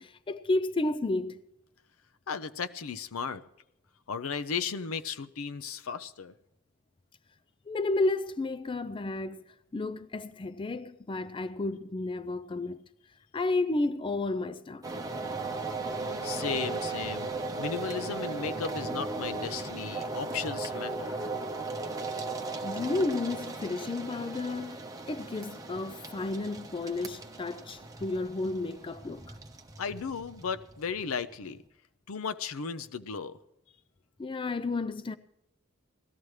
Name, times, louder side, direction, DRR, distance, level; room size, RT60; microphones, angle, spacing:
voice 1, 0.0-1.4 7.7-12.8 13.3-14.9 22.6-29.4 34.2-35.2, left 2 dB, 25° left, 0.4 m, -32 dB
voice 2, 2.3-3.4 4.1-6.3 16.2-17.3 17.6-21.3 29.8-31.6 32.1-33.4, left 6 dB, 90° left, 0.6 m, -35 dB
sound 1, 14.8-31.6, right 3 dB, 15° right, 1.0 m, -37 dB
18.0 x 13.0 x 3.2 m
head